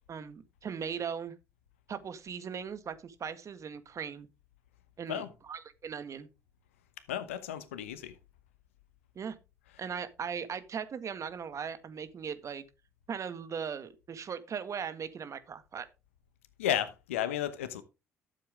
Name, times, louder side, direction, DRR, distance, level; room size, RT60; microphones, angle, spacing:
voice 1, 0.1-1.3 1.9-4.3 5.0-6.3 9.2-9.4 9.8-12.6 13.1-15.9, right 7 dB, 50° right, 1.8 m, -39 dB
voice 2, 7.1-8.1 16.6-17.8, left 10 dB, 90° left, 1.0 m, -33 dB
13.0 x 7.5 x 3.5 m
hypercardioid pair, 55°, 7 cm